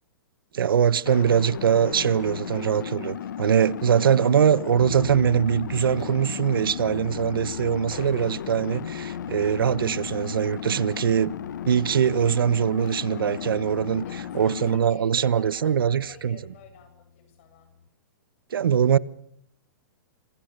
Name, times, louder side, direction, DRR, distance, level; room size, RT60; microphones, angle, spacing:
voice 1, 0.5-11.3 11.6-14.0 14.3-16.4 18.5-19.0, right 8 dB, 90° right, 1.1 m, -22 dB
sound 1, 1.1-14.8, left 10 dB, 60° left, 1.5 m, -35 dB
sound 2, 4.8-17.9, left 6 dB, 75° left, 2.7 m, -43 dB
voice 2, 14.0-17.7, left 7 dB, 35° left, 7.8 m, -49 dB
28.5 x 27.0 x 6.7 m
hypercardioid pair, 175°, 11 cm